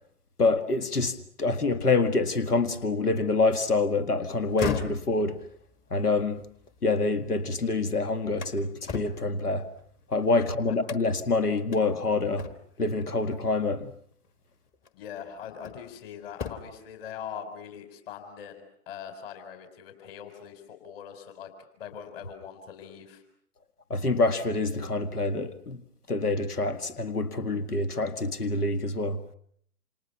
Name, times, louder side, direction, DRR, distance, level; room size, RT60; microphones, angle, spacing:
voice 1, 0.4-5.4 5.9-6.4 6.8-9.7 10.1-12.5 12.8-13.9 23.9-25.8 26.1-29.2, left 3 dB, 75° left, 2.0 m, -26 dB
sound 1, 4.4-7.5 7.9-10.3 10.8-11.3 11.7-11.8 12.4-12.9 14.1-14.3 14.8-16.0 16.3-16.9, left 6 dB, 20° left, 1.5 m, -38 dB
voice 2, 14.9-21.5 21.8-23.2, left 8 dB, 40° left, 4.6 m, -42 dB
28.5 x 28.5 x 5.8 m
figure-of-eight pair, 125°, 46 cm